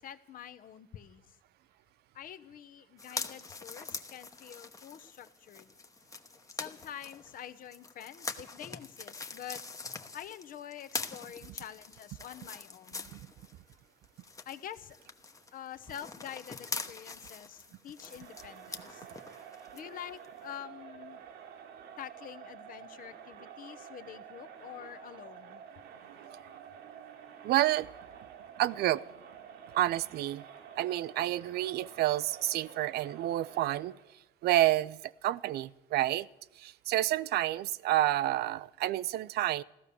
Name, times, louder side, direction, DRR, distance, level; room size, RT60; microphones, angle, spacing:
voice 1, 0.0-1.4 2.1-5.7 6.5-9.6 10.1-13.1 14.4-15.0 15.5-19.1 19.7-21.2 22.0-25.6, left 10 dB, 55° left, 12 dB, 0.9 m, -46 dB
sound 1, 3.0-13.7 14.0-19.8 20.2-20.3, left 4 dB, 20° left, 1.0 m, -43 dB
Crowd, 18.0-34.2, right 8 dB, 85° right, 1.8 m, -50 dB
voice 2, 27.4-27.9 28.6-29.0 29.7-30.4 30.8-33.9 34.4-36.3 36.6-39.6, right 14 dB, 70° right, 19 dB, 0.5 m, -29 dB
15.0 x 13.0 x 6.9 m, 0.90 s
cardioid pair, 110°, 17 cm